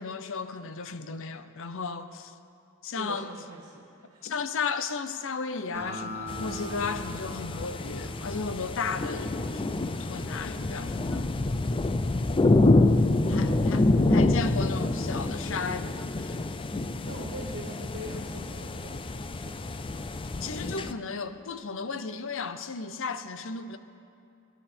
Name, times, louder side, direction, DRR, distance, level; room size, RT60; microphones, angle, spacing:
voice 1, 0.0-2.3 2.8-3.3 4.2-11.3 13.3-13.8 14.1-16.4 20.4-23.8, left 5 dB, 65° left, 0.7 m, -34 dB
voice 2, 2.9-3.8 4.1-4.3 6.4-6.6 9.9-11.0 12.1-14.2 17.1-19.6, right 1 dB, 65° right, 1.7 m, -44 dB
Acoustic guitar, 5.7-9.3, equal, 15° right, 3.9 m, -41 dB
sound 1, 6.3-20.9, left 2 dB, 25° left, 0.5 m, -27 dB
23.5 x 11.0 x 4.4 m
head